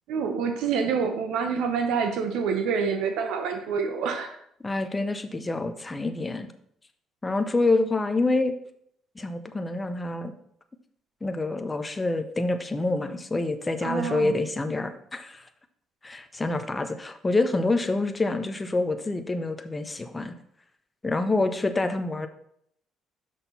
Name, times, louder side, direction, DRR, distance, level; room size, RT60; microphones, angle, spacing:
voice 1, 0.1-4.3 13.8-14.4, right 6 dB, 85° right, 6 dB, 0.8 m, -27 dB
voice 2, 4.6-6.5 7.2-8.5 9.2-10.3 11.2-15.5 16.0-20.3 21.0-22.3, left 2 dB, 15° left, 8 dB, 0.7 m, -27 dB
6.4 x 6.0 x 5.5 m, 0.70 s
cardioid pair, 130°, 0 cm